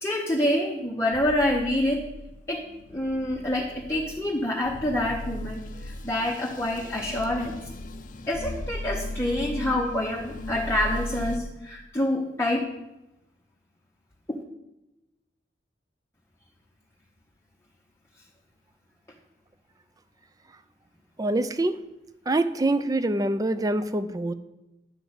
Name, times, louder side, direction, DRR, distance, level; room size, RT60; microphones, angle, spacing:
voice 1, 0.0-2.0 2.5-7.6 8.3-12.7 14.3-14.4, left 1 dB, 15° left, -2 dB, 0.9 m, -27 dB
sound 1, 1.1-11.4, left 1 dB, 45° left, 0.5 m, -37 dB
voice 2, 21.2-21.8 22.3-24.3, right 2 dB, 20° right, 13 dB, 0.4 m, -25 dB
10.5 x 4.7 x 8.0 m, 0.97 s
head